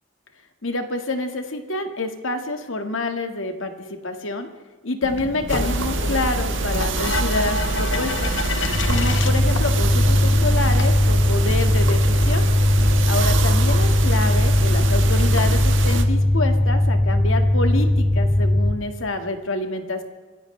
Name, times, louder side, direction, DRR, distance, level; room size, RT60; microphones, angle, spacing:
voice 1, 0.6-4.5 4.8-8.3 8.9-12.5 13.1-20.0, left 2 dB, 90° left, 6 dB, 1.8 m, -27 dB
sound 1, 5.0-10.9, left 3 dB, 70° left, 1.3 m, -29 dB
sound 2, 5.5-16.0, right 3 dB, 75° right, 1.4 m, -24 dB
sound 3, 8.7-18.7, left 1 dB, 45° left, 1.8 m, -19 dB
25.5 x 15.0 x 3.3 m, 1.4 s
head